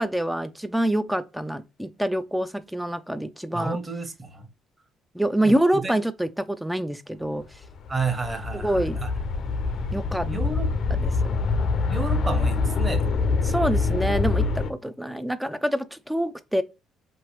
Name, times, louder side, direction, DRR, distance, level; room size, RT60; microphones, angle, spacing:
voice 1, 0.0-3.8 5.1-7.4 8.5-9.0 9.9-10.3 10.9-11.4 13.4-16.6, right 1 dB, 5° right, 0.5 m, -26 dB
voice 2, 3.5-4.5 5.4-5.9 7.9-9.1 10.2-10.7 11.9-13.2, right 3 dB, 25° right, 1.3 m, -31 dB
sound 1, 7.4-14.7, left 4 dB, 60° left, 0.6 m, -25 dB
4.9 x 3.1 x 3.0 m
supercardioid pair, 75°, 0 cm